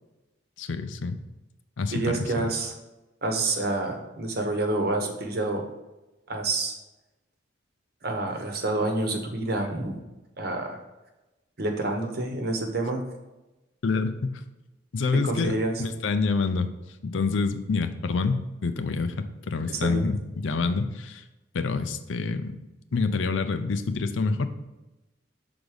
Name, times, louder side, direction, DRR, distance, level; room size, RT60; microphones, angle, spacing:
voice 1, 0.6-1.2 1.8-2.5 13.8-14.4 14.9-16.7 17.0-21.2 21.5-22.6 22.9-24.5, left 4 dB, 80° left, 10 dB, 0.5 m, -27 dB
voice 2, 1.9-2.7 3.2-5.6 6.3-6.7 8.0-10.0 10.4-10.8 11.6-13.0 15.2-15.7 19.7-20.0, right 2 dB, 55° right, 3 dB, 1.0 m, -28 dB
6.0 x 3.9 x 4.9 m, 1.0 s
head